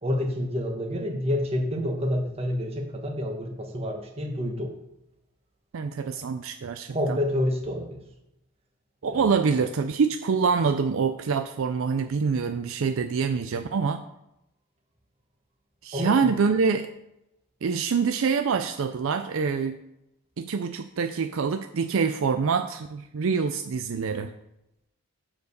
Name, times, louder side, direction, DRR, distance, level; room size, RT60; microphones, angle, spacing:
voice 1, 0.0-4.7 6.2-6.3 6.9-8.0 9.1-9.3 15.9-16.1, left 1 dB, 25° right, 2 dB, 1.3 m, -28 dB
voice 2, 5.7-7.2 9.0-14.0 15.8-16.9 17.6-19.8 20.4-24.3, right 5 dB, 60° right, 7 dB, 0.4 m, -25 dB
7.7 x 4.7 x 6.6 m, 0.87 s
head